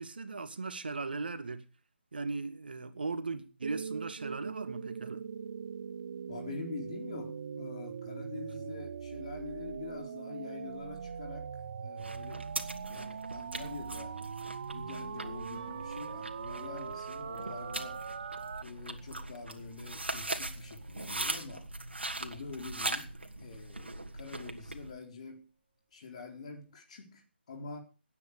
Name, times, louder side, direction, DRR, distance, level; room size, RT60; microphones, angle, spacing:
voice 1, 0.0-1.6 2.1-5.2, right 3 dB, 60° right, 2.1 m, -38 dB
sound 1, 3.6-18.6, right 6 dB, 45° right, 0.6 m, -41 dB
voice 2, 6.3-12.5 12.8-14.2 14.7-18.0 18.6-21.7 22.2-25.4 25.9-27.8, left 5 dB, 40° left, 4.1 m, -46 dB
sound 2, 12.0-24.9, right 2 dB, 75° right, 2.6 m, -41 dB
sound 3, 15.5-22.4 22.7-22.8 23.3-23.4 23.9-24.0, right 7 dB, 20° right, 3.2 m, -58 dB
18.0 x 9.9 x 5.1 m
figure-of-eight pair, 150°, 6 cm